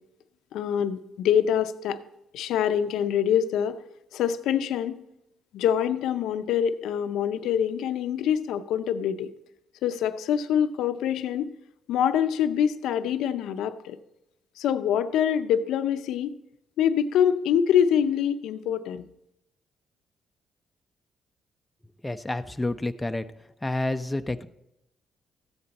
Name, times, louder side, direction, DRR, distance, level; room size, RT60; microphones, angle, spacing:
voice 1, 0.5-2.0 2.3-3.8 4.1-5.0 5.5-9.3 9.8-11.5 11.9-14.0 14.6-16.4 16.8-19.1, left 9 dB, 85° left, 10 dB, 0.6 m, -25 dB
voice 2, 22.0-23.2 23.6-24.5, left 2 dB, 10° left, 8 dB, 0.6 m, -29 dB
14.0 x 8.7 x 4.1 m, 0.84 s
cardioid pair, 90°, 0 cm